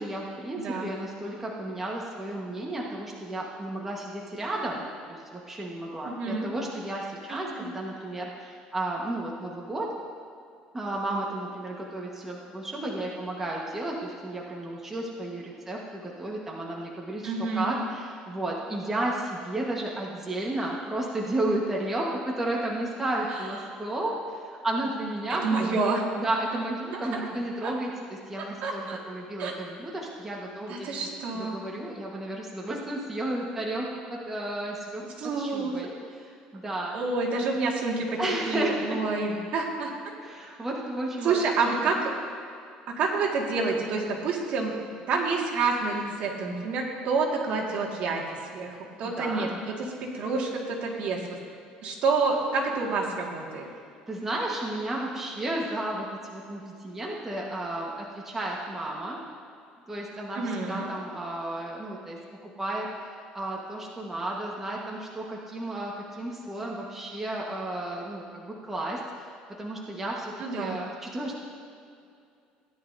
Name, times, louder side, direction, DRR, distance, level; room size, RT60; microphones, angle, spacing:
voice 1, 0.0-9.9 10.7-25.8 26.1-31.1 31.3-35.0 35.4-37.0 38.2-39.0 40.2-41.5 41.9-42.1 49.0-49.5 54.1-59.2 59.9-71.4, right 1 dB, 10° right, -3 dB, 1.3 m, -33 dB
voice 2, 0.6-0.9 6.0-6.5 7.3-7.4 17.2-17.8 25.4-26.0 26.9-27.3 27.6-27.7 28.6-29.0 29.4-29.5 30.7-31.6 35.2-35.8 36.9-38.1 38.5-39.9 41.2-42.1 43.0-44.7 45.1-48.2 48.5-51.2 51.8-53.7 60.4-60.9 70.4-70.8, right 4 dB, 55° right, -1 dB, 1.8 m, -28 dB
17.0 x 10.5 x 2.7 m, 2.4 s
cardioid pair, 145°, 3 cm